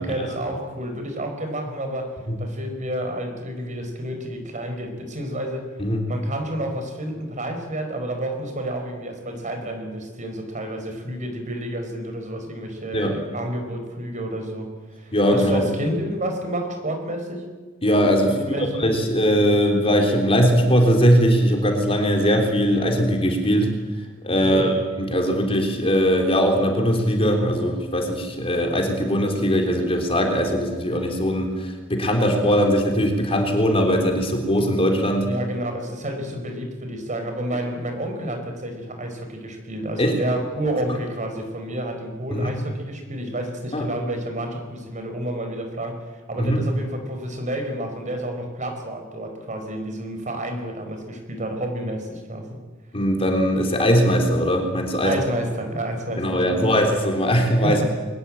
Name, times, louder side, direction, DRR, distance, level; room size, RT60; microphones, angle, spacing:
voice 1, 0.0-2.1 2.4-5.7 6.1-17.4 18.2-18.9 24.4-24.7 35.3-52.6 55.0-56.7 57.6-57.9, right 1 dB, 35° right, 5 dB, 5.0 m, -30 dB
voice 2, 15.1-15.7 17.8-23.7 24.2-24.7 25.0-35.3 40.0-40.1 42.3-42.5 43.7-43.9 46.4-46.6 52.9-55.2 56.2-57.9, equal, 30° left, 3 dB, 3.6 m, -20 dB
22.5 x 20.0 x 9.0 m, 1.3 s
head